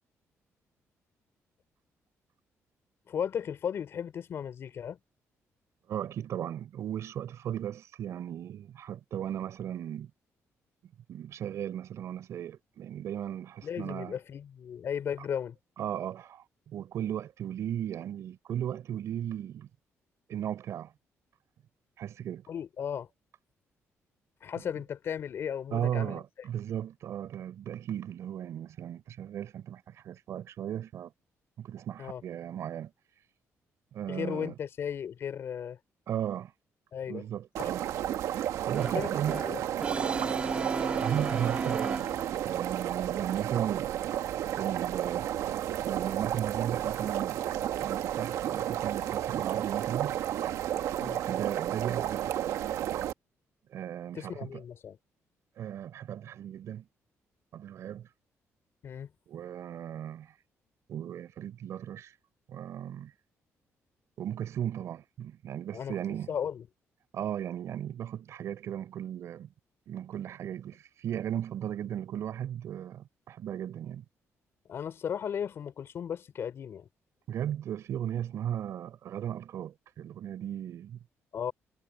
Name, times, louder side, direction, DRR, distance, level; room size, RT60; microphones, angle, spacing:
voice 1, 3.1-5.0 13.6-15.6 22.5-23.1 24.4-26.2 32.0-32.2 34.1-35.8 36.9-37.2 37.6-37.7 38.9-39.6 51.0-51.2 54.1-55.0 58.8-59.1 65.7-65.9 66.3-66.6 74.7-76.9 81.3-81.5, left 8 dB, 50° left, 4.2 m, -35 dB
voice 2, 5.9-10.1 11.1-14.2 15.8-19.7 20.3-20.9 22.0-22.5 25.7-31.1 31.6-32.9 33.9-34.6 36.1-36.5 37.1-37.8 38.6-39.4 40.9-42.1 42.4-43.9 44.5-45.4 45.8-47.5 47.8-50.5 51.3-52.3 53.7-54.6 55.6-56.8 57.5-58.1 59.3-60.4 60.9-62.1 62.5-63.1 64.2-66.3 67.1-69.5 69.9-74.0 77.3-81.0, right 10 dB, 65° right, 4.2 m, -36 dB
sound 1, 37.6-53.1, right 11 dB, 90° right, 1.6 m, -32 dB
Brass instrument, 38.7-42.6, right 3 dB, 20° right, 2.6 m, -35 dB
cardioid pair, 150°, 5 cm